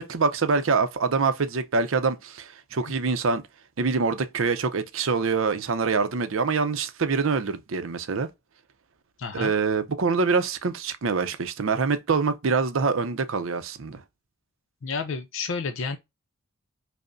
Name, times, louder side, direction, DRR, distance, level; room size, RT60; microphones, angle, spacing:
voice 1, 0.0-3.4 3.8-8.3 9.3-14.0, right 4 dB, 65° right, 0.5 m, -25 dB
voice 2, 9.2-9.5 14.8-16.0, left 4 dB, 60° left, 0.5 m, -30 dB
5.2 x 2.1 x 2.5 m
head